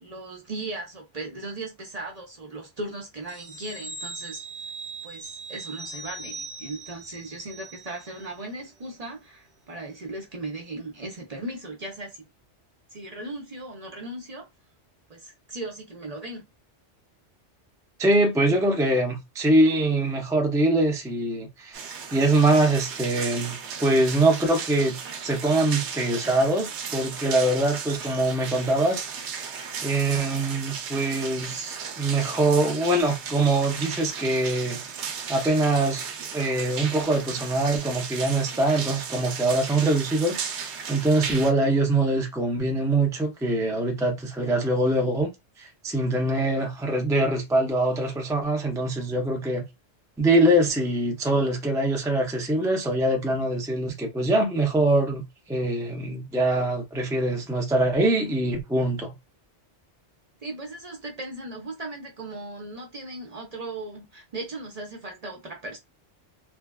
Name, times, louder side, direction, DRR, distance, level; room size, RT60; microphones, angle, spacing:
voice 1, 0.0-4.4 5.0-12.3 12.9-14.5 15.1-16.5 60.4-65.8, right 2 dB, 40° right, 0.6 m, -37 dB
sound 1, 3.3-8.4 8.7-8.9, right 3 dB, 20° right, 1.1 m, -40 dB
voice 2, 18.0-25.0 25.2-29.5 29.8-35.0 35.3-36.1 36.3-45.3 45.6-49.6 50.2-55.2 55.5-59.1, right 2 dB, 5° right, 0.3 m, -23 dB
sound 2, 21.7-41.5, right 6 dB, 75° right, 0.9 m, -35 dB
3.3 x 2.2 x 2.2 m
omnidirectional pair, 1.2 m